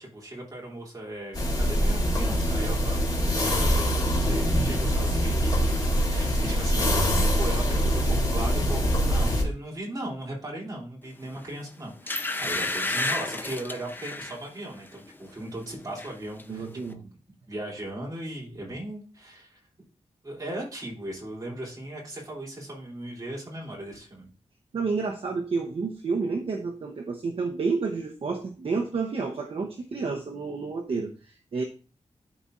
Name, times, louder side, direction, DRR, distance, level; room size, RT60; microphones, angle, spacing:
voice 1, 0.0-5.6 6.1-17.1 17.5-19.6 20.2-24.3, right 1 dB, 30° right, -3 dB, 2.9 m, -37 dB
sound 1, 1.3-9.4, equal, 35° left, 2.4 m, -24 dB
sound 2, 11.4-11.5 12.1-14.4 14.8-15.1 15.4-16.1 16.4-16.5, left 2 dB, 15° left, 0.6 m, -31 dB
voice 2, 16.5-17.0 24.7-31.6, right 4 dB, 55° right, 2 dB, 0.8 m, -30 dB
12.0 x 4.1 x 2.5 m, 0.36 s
wide cardioid pair, 165°, 12 cm